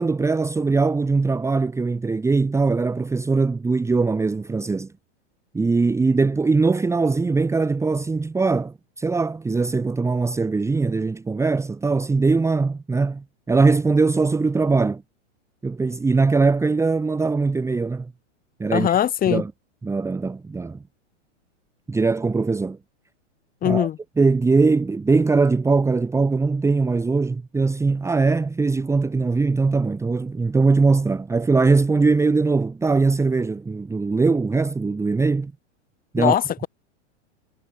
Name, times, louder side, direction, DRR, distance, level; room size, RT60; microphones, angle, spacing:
voice 1, 0.0-4.9 5.5-15.0 15.6-18.1 18.6-18.9 19.3-19.5 19.8-20.8 21.9-22.8 23.6-23.9 24.2-35.5 36.1-36.4, right 4 dB, 5° right, 1.8 m, -21 dB
voice 2, 18.7-19.4 23.6-24.0 36.2-36.7, left 10 dB, 25° left, 4.7 m, -21 dB
hypercardioid pair, 135°, 37 cm